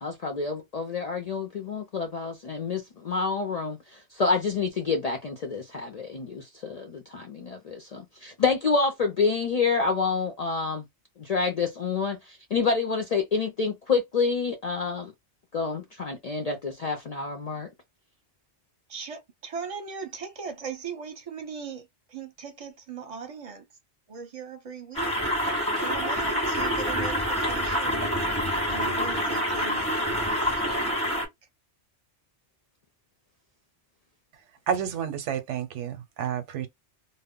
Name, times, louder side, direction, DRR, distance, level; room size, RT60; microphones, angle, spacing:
voice 1, 0.0-10.8 11.2-15.1 15.5-17.7, left 4 dB, 60° left, 0.4 m, -28 dB
voice 2, 18.9-21.9 22.1-23.6 24.1-25.1 25.8-28.1 28.7-30.3 31.0-31.3, right 6 dB, 40° right, 0.6 m, -39 dB
sound 1, 24.9-31.2, equal, 5° left, 0.8 m, -27 dB
voice 3, 34.7-36.7, right 8 dB, 90° right, 0.9 m, -30 dB
2.1 x 2.0 x 3.6 m
omnidirectional pair, 1.2 m